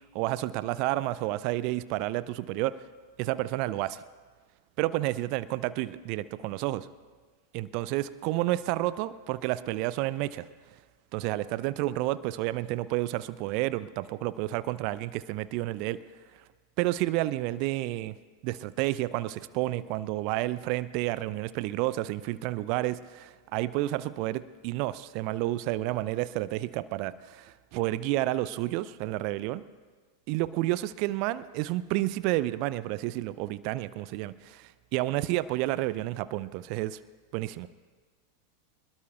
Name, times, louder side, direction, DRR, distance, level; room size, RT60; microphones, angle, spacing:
voice 1, 0.1-2.8 3.2-4.0 4.8-6.9 7.5-10.4 11.1-16.0 16.8-18.1 18.4-29.6 30.3-37.0 37.3-37.7, right 16 dB, 45° right, 17 dB, 0.4 m, -30 dB
24.0 x 21.0 x 2.3 m, 1.4 s
figure-of-eight pair, 90°, 0 cm